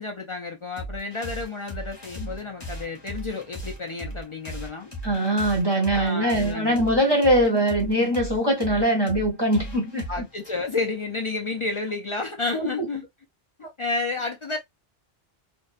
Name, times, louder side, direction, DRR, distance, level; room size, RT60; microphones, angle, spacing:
voice 1, 0.0-4.9 5.9-6.8 10.1-13.1 13.8-14.6, left 3 dB, 50° left, 0.4 m, -31 dB
sound 1, 0.8-11.8, equal, 25° left, 0.9 m, -38 dB
voice 2, 5.0-10.2 12.5-12.9 13.6-13.7, right 1 dB, 25° right, 0.9 m, -22 dB
2.6 x 2.2 x 2.3 m
omnidirectional pair, 1.0 m